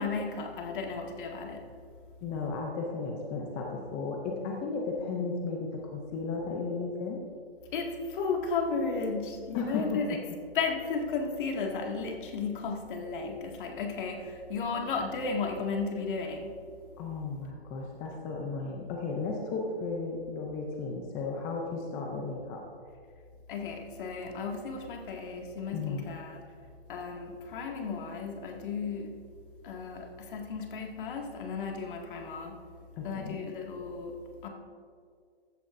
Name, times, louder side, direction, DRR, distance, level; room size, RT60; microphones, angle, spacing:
voice 1, 0.0-1.7 7.7-10.2 10.5-16.6 23.5-26.4 26.9-29.1 29.6-32.6 33.0-34.5, left 4 dB, 55° left, 2 dB, 2.0 m, -34 dB
voice 2, 2.2-7.2 9.5-10.0 17.0-22.6 25.7-26.1 33.0-33.4, left 4 dB, 10° left, 1 dB, 0.4 m, -34 dB
15.0 x 10.5 x 2.5 m, 2.2 s
hypercardioid pair, 150°, 32 cm